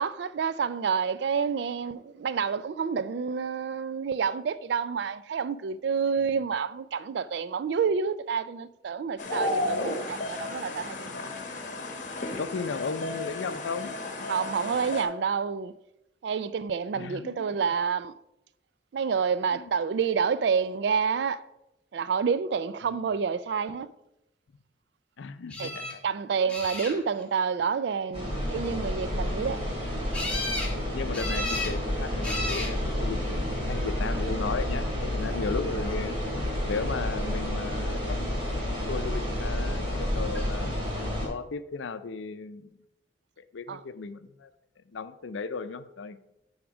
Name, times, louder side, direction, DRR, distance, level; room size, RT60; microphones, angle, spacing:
voice 1, 0.0-11.0 14.3-15.7 16.2-18.1 18.9-21.4 21.9-23.9 25.6-25.7 26.0-29.6 43.7-43.8, right 6 dB, 60° right, 0.3 m, -28 dB
sound 1, 9.2-15.0, left 2 dB, 40° left, 1.2 m, -33 dB
voice 2, 12.3-14.3 16.9-17.6 19.5-19.6 22.9-23.0 25.2-26.0 26.8-26.9 30.9-36.1 36.6-40.7 41.2-42.8 43.5-44.5 44.9-46.2, left 4 dB, 80° left, 0.5 m, -36 dB
sound 2, 25.5-25.9 26.5-27.2 30.1-30.7 31.1-31.7 32.2-32.7 33.6-34.1 40.3-40.5 40.8-40.9, left 2 dB, 5° left, 1.5 m, -33 dB
sound 3, 28.1-41.3, left 1 dB, 30° right, 2.9 m, -30 dB
9.8 x 3.6 x 6.0 m
head